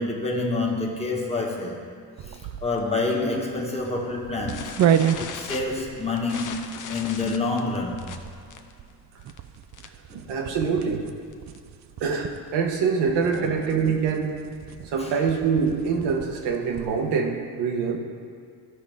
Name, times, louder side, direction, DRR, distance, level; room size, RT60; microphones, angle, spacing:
voice 1, 0.0-1.8 2.6-4.7 5.2-8.0 10.1-10.3 13.3-13.5 15.0-15.1, left 3 dB, 15° left, -1 dB, 1.4 m, -27 dB
sound 1, 2.2-17.1, right 9 dB, 45° right, 0.4 m, -32 dB
sound 2, 4.5-10.1 10.4-10.7 10.9-11.0 11.3-11.6 12.1-13.6, left 7 dB, 50° left, 0.7 m, -39 dB
voice 2, 10.1-11.1 12.0-14.3 14.8-18.0, right 5 dB, 80° right, 2 dB, 1.2 m, -25 dB
13.5 x 4.9 x 3.6 m, 2.3 s
cardioid pair, 100°, 41 cm